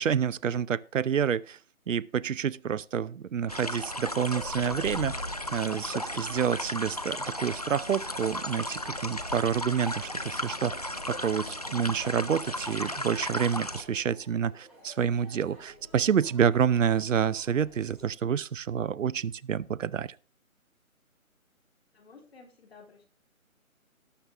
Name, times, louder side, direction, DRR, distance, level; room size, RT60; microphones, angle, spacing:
voice 1, 0.0-1.6 1.9-5.2 5.5-10.7 11.1-20.1, right 8 dB, 65° right, 0.6 m, -28 dB
sound 1, 3.5-13.8, left 1 dB, 30° left, 0.5 m, -35 dB
sound 2, 8.4-18.0, equal, ahead, 2.0 m, -55 dB
voice 2, 21.9-23.1, left 4 dB, 45° left, 3.8 m, -53 dB
18.5 x 6.6 x 3.5 m
hypercardioid pair, 165°, 42 cm